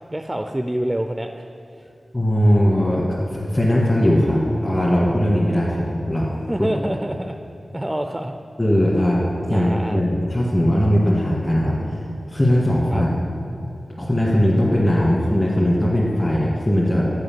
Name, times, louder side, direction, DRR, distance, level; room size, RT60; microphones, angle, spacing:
voice 1, 0.1-1.5 6.5-7.4 7.7-8.3 9.5-10.0 12.9-13.0, right 1 dB, 15° right, 6 dB, 0.4 m, -26 dB
voice 2, 2.1-3.1 3.3-6.3 6.6-6.7 8.6-12.0 12.3-13.1 14.0-17.1, equal, 30° left, -6 dB, 1.7 m, -19 dB
7.9 x 5.1 x 7.5 m, 2.6 s
cardioid pair, 45°, 0 cm